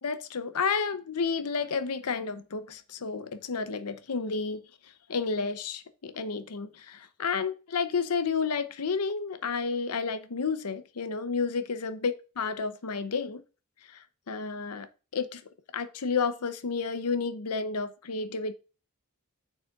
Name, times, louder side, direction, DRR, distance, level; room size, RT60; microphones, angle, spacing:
voice 1, 0.0-4.6 5.1-13.4 14.3-14.9 15.1-15.4 15.7-18.5, left 5 dB, 85° left, 0.7 m, -31 dB
8.9 x 6.4 x 2.4 m
head